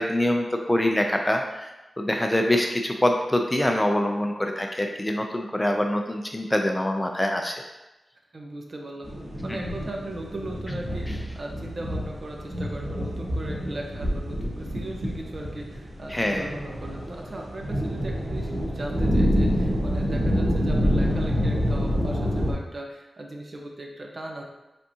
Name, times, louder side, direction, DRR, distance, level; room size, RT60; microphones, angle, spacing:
voice 1, 0.0-1.7 2.0-7.5 9.5-9.6 16.1-16.5, left 1 dB, 15° left, 3 dB, 0.4 m, -24 dB
voice 2, 8.3-9.2 9.4-24.4, right 1 dB, 45° right, 1 dB, 0.7 m, -38 dB
sound 1, 9.0-22.5, equal, 75° right, 1.1 m, -27 dB
5.4 x 3.5 x 2.8 m, 1.0 s
wide cardioid pair, 115°, 0 cm